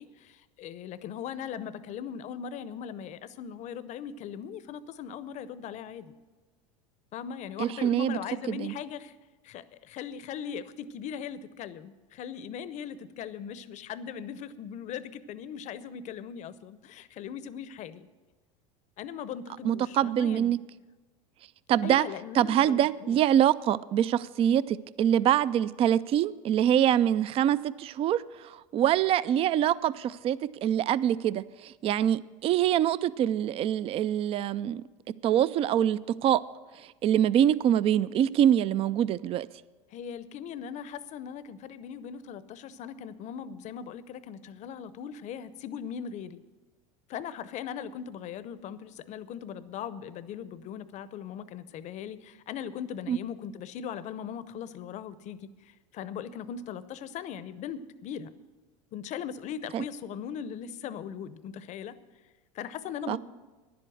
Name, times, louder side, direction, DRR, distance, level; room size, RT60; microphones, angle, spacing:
voice 1, 0.0-6.1 7.1-9.1 9.4-18.1 19.0-20.6 21.8-23.2 39.9-46.4 47.1-58.3 58.9-62.0 62.5-63.2, left 8 dB, 45° left, 15 dB, 0.7 m, -39 dB
voice 2, 7.6-8.2 8.5-8.7 19.6-20.6 21.7-22.1 22.3-34.8 35.2-36.4 37.0-39.5 53.1-53.2 59.7-59.8 63.1-63.2, right 10 dB, 35° right, 18 dB, 0.3 m, -25 dB
10.5 x 7.8 x 7.8 m, 1.3 s
hypercardioid pair, 105°, 18 cm